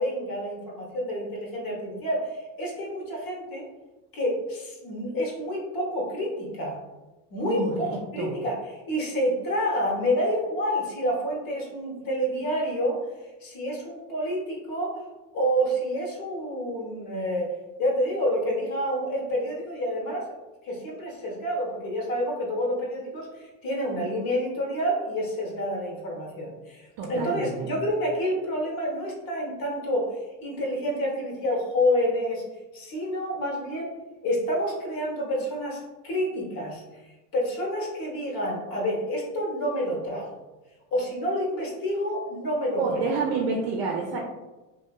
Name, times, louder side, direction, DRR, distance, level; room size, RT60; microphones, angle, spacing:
voice 1, 0.0-3.7 4.1-6.8 7.3-7.9 8.1-13.0 13.4-14.9 15.3-17.5 17.8-20.3 20.6-30.1 30.4-32.4 32.7-33.9 34.2-40.4 40.9-43.1, equal, 50° left, -2 dB, 1.0 m, -28 dB
voice 2, 7.5-7.9 8.2-8.4 27.0-27.8 42.8-44.2, right 4 dB, 55° right, 0 dB, 0.5 m, -28 dB
2.6 x 2.4 x 2.2 m, 1.1 s
supercardioid pair, 100°, 44 cm